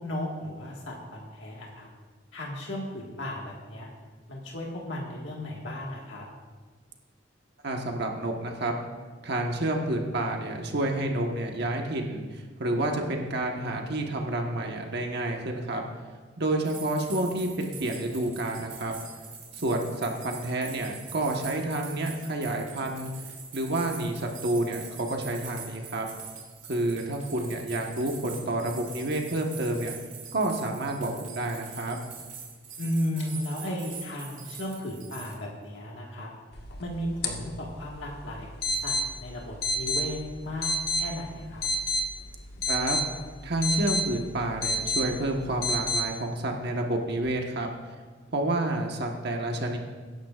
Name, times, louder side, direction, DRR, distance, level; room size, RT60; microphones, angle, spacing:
voice 1, 0.0-1.9 2.3-3.9 4.3-6.3 32.8-36.3 36.8-41.7, left 1 dB, 75° left, -2 dB, 1.7 m, -35 dB
voice 2, 7.6-8.7 9.2-15.9 16.4-19.0 19.6-23.1 23.5-26.1 26.7-29.9 30.3-32.0 42.7-43.0 43.4-47.7 48.3-49.8, right 1 dB, 60° right, 2 dB, 1.3 m, -29 dB
sound 1, 16.6-35.3, right 6 dB, 45° right, 2.7 m, -44 dB
sound 2, 36.5-46.0, left 1 dB, 55° left, 1.5 m, -31 dB
21.0 x 10.5 x 2.5 m, 1.4 s
head